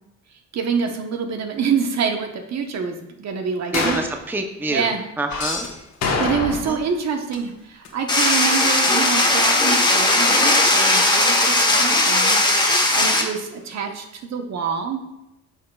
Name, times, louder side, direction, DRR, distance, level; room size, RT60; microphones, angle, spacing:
voice 1, 0.5-4.0 4.7-5.0 6.2-15.0, right 6 dB, 60° right, 4 dB, 1.0 m, -26 dB
sound 1, 3.7-4.2 6.0-6.9 7.1-7.2 12.2-12.4, left 3 dB, 55° left, 1.2 m, -25 dB
voice 2, 3.7-5.7 6.6-6.8, right 2 dB, 5° right, 5 dB, 0.6 m, -26 dB
sound 2, 5.3-6.9 7.3-7.9 9.5-9.6, left 4 dB, 75° left, 1.6 m, -32 dB
sound 3, 8.1-13.2, left 2 dB, 15° left, 1.1 m, -17 dB
10.0 x 5.5 x 2.3 m, 0.93 s
cardioid pair, 90°, 30 cm